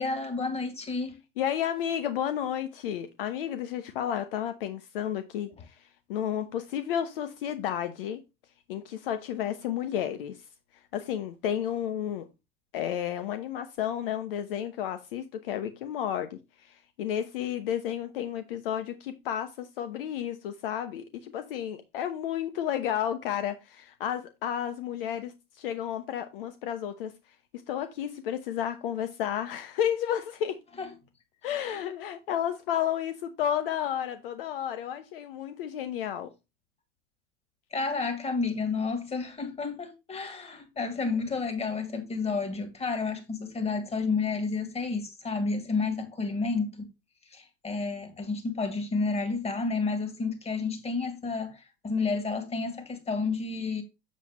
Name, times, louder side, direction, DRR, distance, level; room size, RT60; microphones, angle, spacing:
voice 1, 0.0-1.2 30.8-30.9 31.7-31.8 37.7-46.9 47.3-53.8, left 4 dB, 20° left, 2.6 m, -30 dB
voice 2, 1.4-8.2 8.7-10.5 10.7-12.3 12.7-27.1 27.5-30.6 31.4-36.3, left 10 dB, 60° left, 1.0 m, -32 dB
7.5 x 7.4 x 3.0 m
hypercardioid pair, 90°, 31 cm